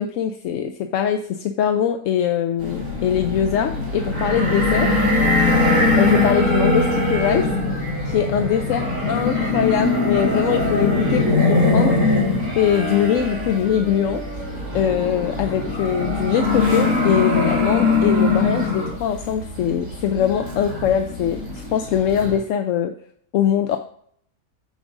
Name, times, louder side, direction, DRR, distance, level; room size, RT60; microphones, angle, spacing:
voice 1, 0.0-4.9 6.0-7.5 8.1-12.0 12.6-14.2 14.7-21.4 21.7-22.9 23.3-23.8, left 9 dB, 70° left, 6 dB, 0.8 m, -22 dB
sound 1, 2.6-22.4, left 2 dB, 75° right, 3.7 m, -21 dB
14.0 x 4.9 x 2.5 m, 0.63 s
omnidirectional pair, 1.6 m